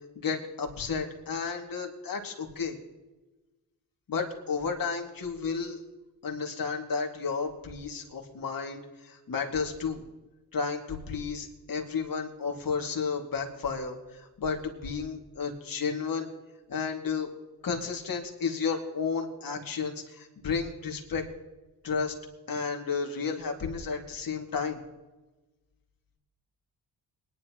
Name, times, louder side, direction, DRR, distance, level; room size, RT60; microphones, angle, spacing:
voice 1, 0.2-2.8 4.1-5.8 6.2-10.0 10.5-16.3 16.7-17.3 17.6-21.2 21.8-22.1 22.5-24.8, left 5 dB, 55° left, 2 dB, 2.4 m, -32 dB
22.5 x 10.5 x 3.1 m, 1.1 s
cardioid pair, 70°, 41 cm